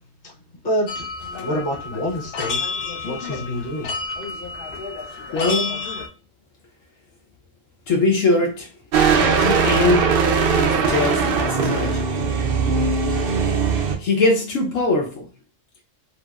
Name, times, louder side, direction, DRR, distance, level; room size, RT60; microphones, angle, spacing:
voice 1, 0.6-1.0 1.4-2.6 3.0-3.9, equal, 45° left, 1.2 m, -26 dB
sound 1, 0.9-6.1, left 4 dB, 60° left, 0.6 m, -30 dB
voice 2, 5.3-5.9 7.9-8.7 9.3-10.1 10.6-12.1 14.0-15.3, left 3 dB, 80° left, 1.1 m, -21 dB
sound 2, 8.9-14.0, right 5 dB, 60° right, 0.6 m, -19 dB
2.9 x 2.8 x 2.2 m
omnidirectional pair, 1.3 m